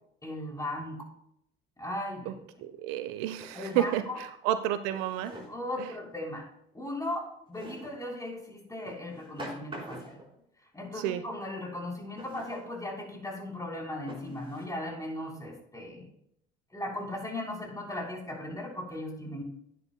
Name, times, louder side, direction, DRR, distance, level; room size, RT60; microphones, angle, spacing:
voice 1, 0.2-1.1 1.8-2.4 3.5-4.2 5.5-6.5 6.7-10.2 10.7-16.1 16.7-19.4, left 1 dB, 10° left, -1 dB, 3.5 m, -37 dB
Drawer open or close, 2.0-2.1 3.3-4.2 4.9-5.7 7.5-8.0 8.8-10.3 12.2-12.6 13.3-13.4 14.1-14.6, right 1 dB, 15° right, 4.1 m, -45 dB
voice 2, 2.6-5.3 5.8-5.9 10.9-11.2, right 12 dB, 65° right, 11 dB, 0.6 m, -31 dB
12.0 x 9.7 x 2.2 m, 0.73 s
hypercardioid pair, 60°, 30 cm